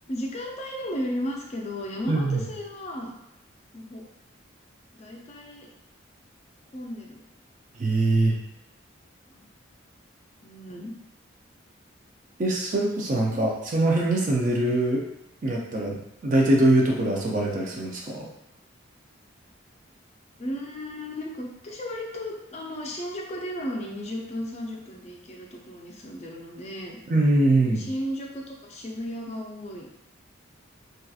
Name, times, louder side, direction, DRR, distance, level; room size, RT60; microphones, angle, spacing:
voice 1, 0.1-3.1 3.7-4.0 5.0-5.7 6.7-7.2 9.3-9.5 10.4-10.9 13.3-13.5 20.4-27.0 27.6-30.0, equal, 30° left, -1 dB, 0.4 m, -35 dB
voice 2, 2.1-2.4 7.8-8.3 12.4-15.0 15.4-18.3 27.1-27.9, right 2 dB, 40° right, -1 dB, 0.4 m, -23 dB
2.7 x 2.3 x 2.3 m, 0.85 s
head